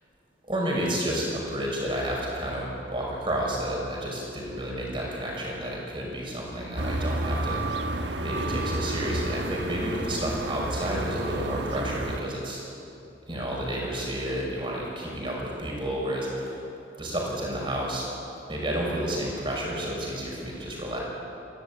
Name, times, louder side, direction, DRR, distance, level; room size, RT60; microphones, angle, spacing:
voice 1, 0.4-7.6 8.2-12.6 13.3-16.6 17.0-18.1 18.5-21.0, right 1 dB, 25° right, -2 dB, 5.8 m, -30 dB
sound 1, 6.8-12.2, right 1 dB, 65° right, 1.4 m, -31 dB
24.0 x 16.5 x 8.8 m, 2.8 s
head